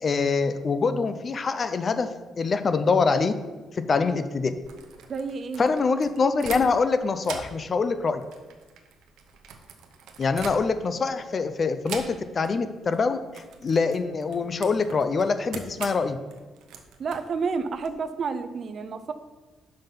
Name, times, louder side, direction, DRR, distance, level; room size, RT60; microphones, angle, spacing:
voice 1, 0.0-2.1 2.4-3.3 3.7-4.5 5.6-8.2 10.2-16.2, left 4 dB, 40° left, 10 dB, 0.5 m, -24 dB
sound 1, 4.5-6.9 7.2-11.0 11.8-12.5 12.8-13.0 13.3-17.9, right 6 dB, 85° right, 0.7 m, -42 dB
voice 2, 5.1-5.9 17.0-19.1, right 5 dB, 50° right, 10 dB, 0.5 m, -30 dB
5.6 x 5.3 x 5.7 m, 1.2 s
cardioid pair, 90°, 0 cm